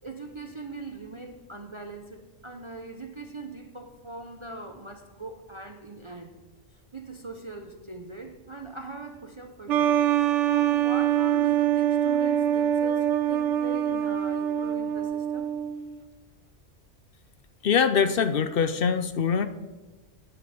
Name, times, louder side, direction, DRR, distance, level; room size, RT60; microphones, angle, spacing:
voice 1, 0.0-6.4 6.7-10.0 10.5-15.5, right 3 dB, 30° right, 5 dB, 0.8 m, -40 dB
sound 1, 9.7-16.0, right 10 dB, 75° right, 0.9 m, -24 dB
voice 2, 17.6-19.5, left 6 dB, 55° left, 11 dB, 0.7 m, -23 dB
9.2 x 7.3 x 8.6 m, 1.2 s
omnidirectional pair, 1.3 m